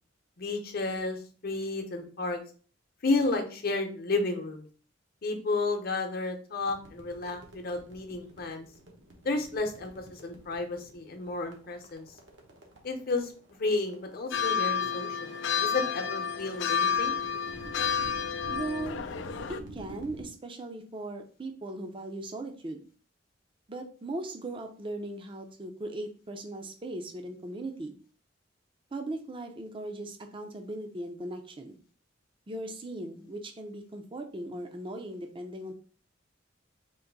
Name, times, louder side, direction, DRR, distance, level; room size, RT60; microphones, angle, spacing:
voice 1, 0.4-2.4 3.0-4.7 5.2-8.7 9.2-12.1 12.8-13.3 13.6-15.3 15.6-17.2, left 3 dB, 55° left, 5 dB, 0.8 m, -32 dB
sound 1, 6.6-20.3, right 1 dB, 75° right, 1.0 m, -49 dB
sound 2, 14.3-19.6, left 7 dB, 75° left, 0.4 m, -30 dB
voice 2, 18.5-19.0 19.7-22.8 23.7-27.9 28.9-31.8 32.5-35.7, right 2 dB, 25° right, 4 dB, 0.5 m, -38 dB
3.8 x 2.6 x 3.9 m, 0.41 s
head